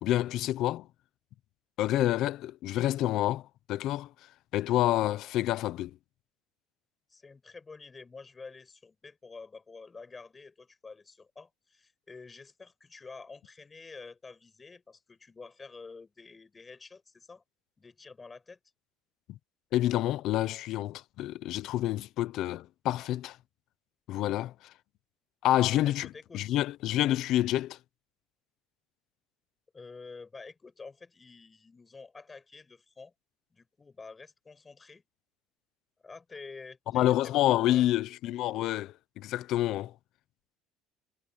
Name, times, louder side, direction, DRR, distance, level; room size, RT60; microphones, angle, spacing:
voice 1, 0.0-0.9 1.8-4.1 4.5-6.0 19.3-19.4 19.7-23.4 24.1-24.5 25.4-26.1 26.3-27.8 36.9-39.9, left 14 dB, 50° left, 0.7 m, -28 dB
voice 2, 7.1-17.4 17.8-18.6 25.8-26.6 29.7-33.1 33.5-35.0 36.0-37.9, left 4 dB, 15° left, 6.7 m, -49 dB
cardioid pair, 170°, 0 cm